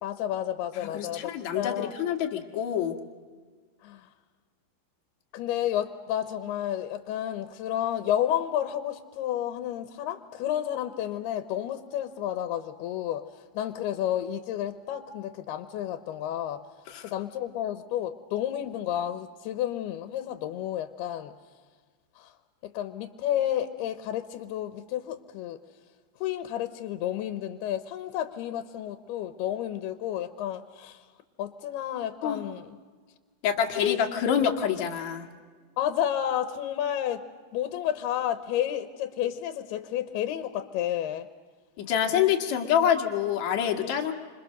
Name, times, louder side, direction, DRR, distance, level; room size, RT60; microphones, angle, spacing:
voice 1, 0.0-1.9 3.8-4.1 5.3-13.3 13.5-16.6 17.0-21.3 22.2-22.3 22.7-25.6 26.2-31.0 31.4-32.8 33.8-34.0 35.8-37.2 37.5-41.3, left 11 dB, 85° left, 10 dB, 2.9 m, -31 dB
voice 2, 0.8-3.0 16.9-17.1 32.2-32.4 33.4-35.3 41.8-44.1, left 9 dB, 55° left, 2 dB, 2.8 m, -26 dB
28.5 x 26.0 x 6.6 m, 1.5 s
omnidirectional pair, 4.4 m